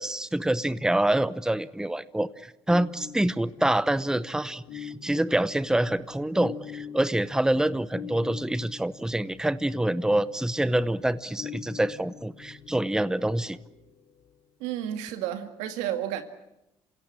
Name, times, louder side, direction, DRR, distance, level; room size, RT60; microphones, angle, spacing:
voice 1, 0.0-13.6, right 1 dB, 5° right, 0.9 m, -26 dB
sound 1, 2.7-14.3, left 8 dB, 75° left, 3.4 m, -44 dB
voice 2, 14.6-16.2, right 11 dB, 90° right, 2.1 m, -31 dB
27.0 x 17.0 x 10.0 m
supercardioid pair, 75°, 11 cm